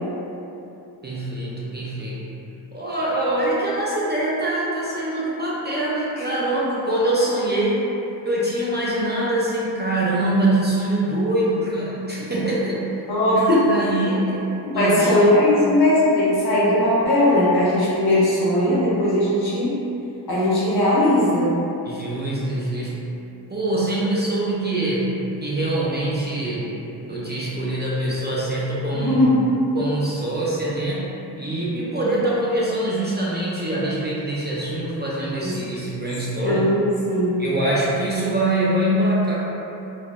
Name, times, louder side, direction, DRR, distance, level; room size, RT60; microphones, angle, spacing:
voice 1, 1.0-2.2 2.7-7.8 8.2-13.0 13.3-14.3 14.7-15.3 21.8-23.0 23.5-25.1 25.4-26.8 27.1-29.3 29.7-31.1 31.4-36.7 37.4-39.3, right 1 dB, 25° right, -7 dB, 0.4 m, -24 dB
voice 2, 13.1-13.6 14.5-19.8 20.3-21.5 28.9-29.5 35.4-35.5 36.4-37.4, left 1 dB, 60° left, -8 dB, 0.9 m, -19 dB
3.2 x 2.2 x 2.5 m, 2.9 s
wide cardioid pair, 85°, 42 cm